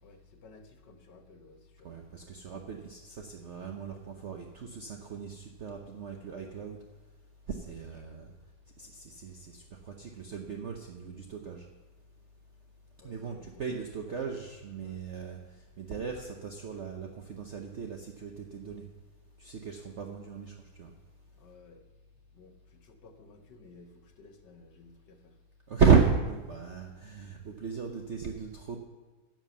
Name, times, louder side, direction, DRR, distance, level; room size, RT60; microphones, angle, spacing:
voice 1, 0.0-1.9 7.6-7.8 8.0-8.1 13.0-14.4 14.8-15.0 19.6-20.0 21.3-21.9 22.3-25.4, left 3 dB, 90° left, 5 dB, 1.9 m, -56 dB
voice 2, 1.8-6.8 7.5-8.3 8.8-11.7 13.0-18.8 19.4-20.9 25.7-28.8, right 5 dB, 50° right, 2 dB, 1.0 m, -33 dB
11.0 x 7.6 x 7.0 m, 1.2 s
omnidirectional pair, 1.8 m